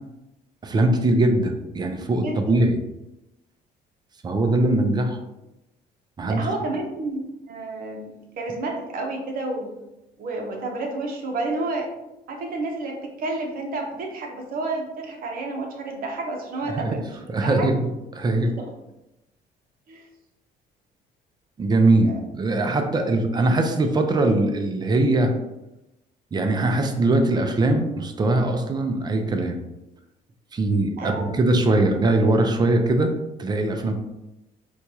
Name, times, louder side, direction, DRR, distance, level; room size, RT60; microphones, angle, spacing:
voice 1, 0.6-2.8 4.2-5.2 6.2-6.4 16.7-16.9 17.3-17.7 18.1-18.5 21.6-25.3 26.3-29.6 30.5-33.1 33.4-33.9, right 2 dB, 25° right, 5 dB, 0.5 m, -21 dB
voice 2, 2.2-2.6 6.3-9.7 10.2-11.9 12.3-17.7 18.4-18.7 19.9-20.0 22.0-22.2 22.9-23.1 31.0-31.6, right 2 dB, 60° right, 1 dB, 0.8 m, -31 dB
4.4 x 2.3 x 2.8 m, 0.94 s
cardioid pair, 110°, 17 cm